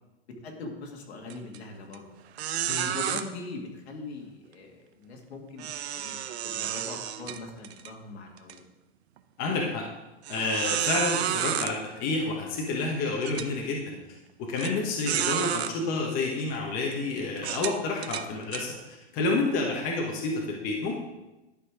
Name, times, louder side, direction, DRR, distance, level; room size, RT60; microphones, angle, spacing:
voice 1, 0.4-2.0 2.8-4.7 5.0-5.6 6.0-8.6, left 3 dB, 75° left, 1 dB, 2.2 m, -41 dB
sound 1, 1.3-1.6 1.9-2.0 2.4-3.2 5.6-7.9 8.4-8.5 9.2-9.3 10.2-11.7 12.6-12.7 13.2-13.5 14.6-14.7 15.1-15.7 16.4-16.6 17.4-18.6, right 10 dB, 75° right, 0.7 m, -31 dB
voice 2, 9.4-9.8 10.3-14.0 14.4-18.8 19.1-21.0, left 3 dB, 25° left, -1 dB, 1.1 m, -29 dB
11.0 x 4.2 x 4.9 m, 1.0 s
supercardioid pair, 165°, 33 cm